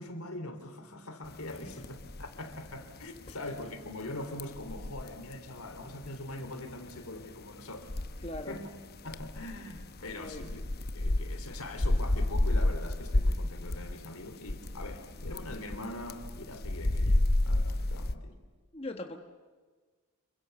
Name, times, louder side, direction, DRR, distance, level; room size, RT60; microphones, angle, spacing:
voice 1, 0.0-7.9 8.5-8.7 9.0-10.7 10.9-18.3, left 1 dB, 80° left, 7 dB, 3.6 m, -42 dB
sound 1, 1.3-18.1, left 1 dB, 45° left, 0.9 m, -32 dB
voice 2, 8.2-8.6 10.2-10.4 18.7-19.2, left 1 dB, 25° left, 5 dB, 1.3 m, -39 dB
27.5 x 24.0 x 7.0 m, 1.4 s
head